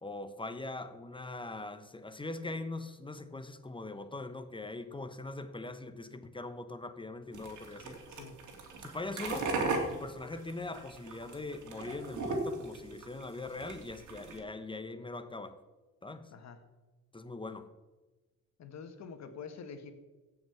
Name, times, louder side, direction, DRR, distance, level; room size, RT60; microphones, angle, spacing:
voice 1, 0.0-8.0 8.8-9.5 9.9-15.6 16.0-16.3 17.1-17.7, left 2 dB, 15° left, 11 dB, 1.0 m, -41 dB
sound 1, 7.3-14.4, right 3 dB, 75° right, 2.6 m, -37 dB
voice 2, 18.6-19.9, left 5 dB, 60° left, 8 dB, 1.7 m, -46 dB
15.5 x 5.9 x 7.0 m, 1.2 s
cardioid pair, 90°, 30 cm